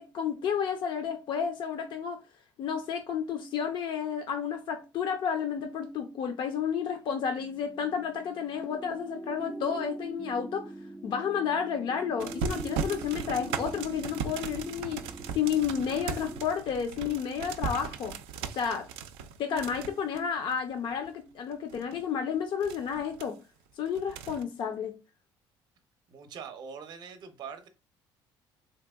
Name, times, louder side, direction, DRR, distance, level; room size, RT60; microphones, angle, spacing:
voice 1, 0.0-2.2 2.6-10.7 11.0-15.1 15.3-18.2 18.5-18.9 19.4-23.4 23.8-24.9, left 7 dB, 55° left, 0.5 m, -31 dB
sound 1, 7.4-16.5, right 1 dB, ahead, 0.3 m, -42 dB
sound 2, 12.2-21.1 21.5-22.0 22.6-23.2 23.9-24.4, right 7 dB, 90° right, 0.3 m, -37 dB
voice 2, 26.1-27.7, right 6 dB, 50° right, 0.6 m, -43 dB
3.4 x 2.8 x 2.2 m
cardioid pair, 95°, 9 cm